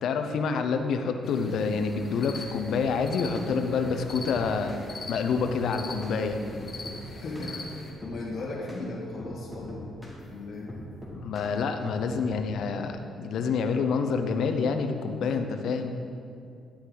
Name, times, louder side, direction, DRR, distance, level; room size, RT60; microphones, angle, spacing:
voice 1, 0.0-4.7 5.1-6.4 11.1-15.9, left 5 dB, 70° left, 6 dB, 0.7 m, -27 dB
sound 1, 1.2-7.9, left 2 dB, 35° left, 1.6 m, -42 dB
sound 2, 2.0-2.9 3.4-3.5 3.9-4.9 5.4-5.5 6.0-6.2 6.5-7.0 7.4-7.5 8.0-8.2 8.7-8.8 9.2-10.2 10.7-11.5 11.9-12.4, left 1 dB, 5° left, 2.3 m, -42 dB
voice 2, 7.1-9.9 10.3-10.8, left 2 dB, 55° left, -4 dB, 2.3 m, -37 dB
11.5 x 8.7 x 4.0 m, 2.5 s
cardioid pair, 90°, 0 cm